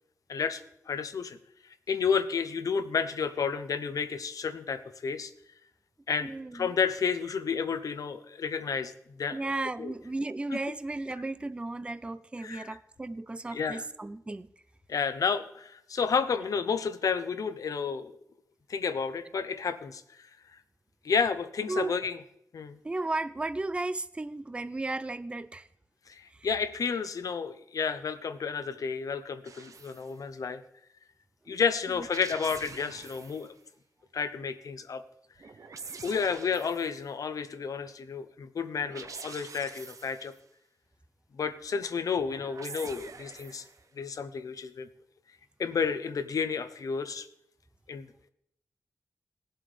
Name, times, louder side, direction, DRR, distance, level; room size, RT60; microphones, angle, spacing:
voice 1, 0.3-0.6 0.9-1.4 1.9-5.3 6.1-8.9 9.2-9.4 9.8-9.9 10.5-10.6 12.4-12.8 13.5-13.8 14.9-18.1 18.7-20.6 21.0-22.2 22.5-22.8 26.1-30.6 31.5-33.5 34.1-35.0 36.0-40.3 41.3-43.6 44.0-44.9 45.6-47.3 47.9-48.1, left 6 dB, 75° left, 0.8 m, -31 dB
voice 2, 6.2-6.7 9.3-14.5 21.7-21.9 22.8-25.7 26.3-26.5 31.5-31.6 32.0-32.1, right 2 dB, 20° right, 0.4 m, -34 dB
sound 1, 29.5-30.1 31.9-33.5 35.4-37.0 38.8-40.4 42.2-43.8, right 5 dB, 65° right, 0.8 m, -46 dB
19.0 x 7.6 x 3.3 m
wide cardioid pair, 95°, 6 cm